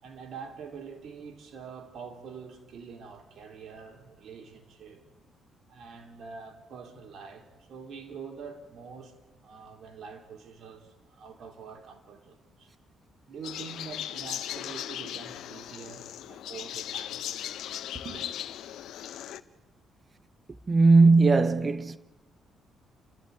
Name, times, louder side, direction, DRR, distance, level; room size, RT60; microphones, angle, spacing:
voice 1, 0.0-5.0 5.7-9.1 9.4-12.7 13.3-17.2 17.9-18.3, right 5 dB, 65° right, 3.8 m, -45 dB
sound 1, 13.4-19.4, left 11 dB, 80° left, 0.8 m, -38 dB
voice 2, 20.7-22.0, right 3 dB, 30° right, 1.1 m, -19 dB
30.0 x 14.0 x 9.5 m
cardioid pair, 90°, 0 cm